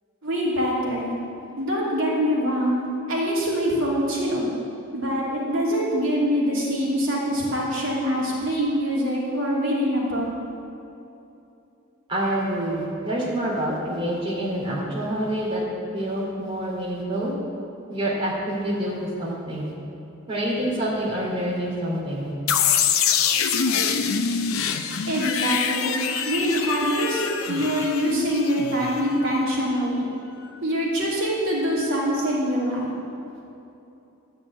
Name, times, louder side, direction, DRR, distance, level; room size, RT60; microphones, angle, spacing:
voice 1, 0.2-1.1 1.6-2.8 3.1-4.5 4.9-10.3 25.1-26.0 26.2-30.1 30.6-32.9, equal, 70° right, -5 dB, 2.8 m, -24 dB
voice 2, 12.1-15.6 15.9-17.3 17.9-19.7 20.3-22.3, right 1 dB, 25° right, -6 dB, 2.7 m, -27 dB
sound 1, 22.5-29.3, left 7 dB, 85° left, 0.7 m, -25 dB
12.0 x 6.5 x 8.5 m, 2.8 s
head